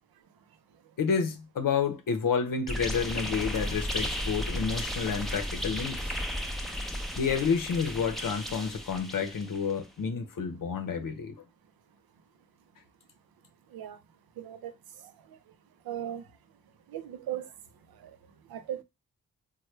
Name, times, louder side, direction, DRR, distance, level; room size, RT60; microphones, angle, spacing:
voice 1, 1.0-6.1 7.2-11.4, left 6 dB, 65° left, 0.6 m, -30 dB
sound 1, 2.7-9.7, equal, ahead, 0.6 m, -34 dB
voice 2, 14.4-14.7 15.9-16.2 16.9-17.5 18.0-18.1 18.5-18.8, right 11 dB, 90° right, 0.5 m, -37 dB
3.2 x 2.2 x 3.0 m
cardioid pair, 45°, 35 cm